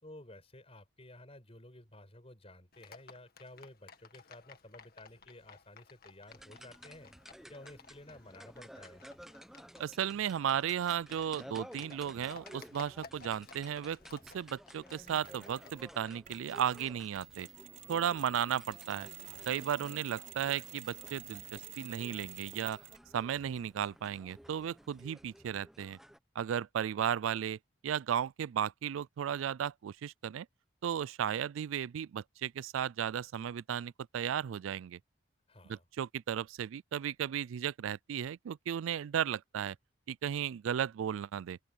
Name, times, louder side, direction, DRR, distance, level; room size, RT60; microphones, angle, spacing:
voice 1, 0.0-7.1 7.5-9.0 35.5-35.9, left 1 dB, 30° left, 5.6 m, -53 dB
Livestock farm animals working animals, 2.7-16.1, left 4 dB, 50° left, 1.9 m, -57 dB
sound 1, 6.3-26.2, equal, ahead, 1.0 m, -54 dB
voice 2, 9.8-17.5 17.9-19.1 19.5-22.8 23.1-26.0 26.4-27.6 27.8-30.5 30.8-35.0 35.7-39.8 40.1-41.6, right 9 dB, 90° right, 0.3 m, -35 dB
Mechanisms, 15.1-15.9 16.2-23.1, right 13 dB, 40° right, 4.7 m, -50 dB
open air
head